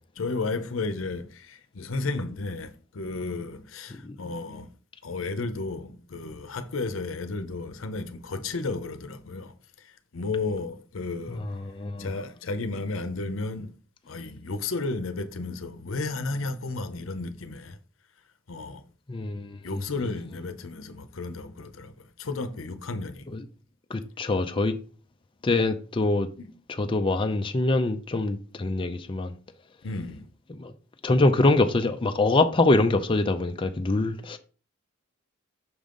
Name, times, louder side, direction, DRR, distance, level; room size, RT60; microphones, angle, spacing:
voice 1, 0.2-4.7 5.0-11.5 12.0-13.7 14.1-17.8 18.5-18.8 19.6-23.3 26.4-26.5 29.8-30.3, left 3 dB, 70° left, 0.7 m, -33 dB
voice 2, 11.3-12.1 19.1-19.6 23.3-23.4 23.9-24.7 25.4-26.3 26.8-29.3 30.6-30.7 31.0-34.4, left 2 dB, 25° left, 0.5 m, -24 dB
6.2 x 5.3 x 3.8 m
head